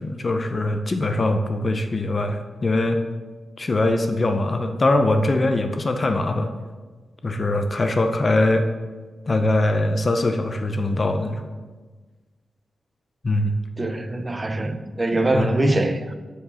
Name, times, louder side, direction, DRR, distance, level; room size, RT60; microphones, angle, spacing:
voice 1, 0.0-3.0 3.6-6.5 7.2-8.7 9.3-11.5 13.2-13.6 15.3-15.5, left 2 dB, 30° left, 6 dB, 0.5 m, -22 dB
voice 2, 13.8-16.1, right 2 dB, 20° right, 8 dB, 0.5 m, -23 dB
8.0 x 5.0 x 6.2 m, 1.4 s
wide cardioid pair, 155°, 0 cm